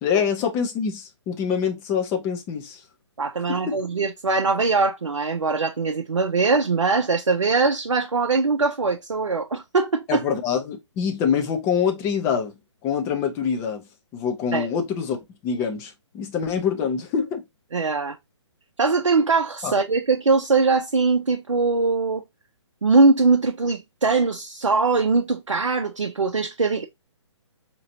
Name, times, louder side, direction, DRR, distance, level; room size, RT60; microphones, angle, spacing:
voice 1, 0.0-2.8 3.5-3.8 10.1-13.9 14.1-15.2 15.4-17.4 19.6-19.7, left 7 dB, 15° left, 0.6 m, -25 dB
voice 2, 3.2-10.2 14.5-14.7 17.7-18.2 18.8-22.2 22.8-26.9, right 4 dB, 80° right, 0.6 m, -21 dB
4.9 x 2.9 x 2.7 m
figure-of-eight pair, 135°, 16 cm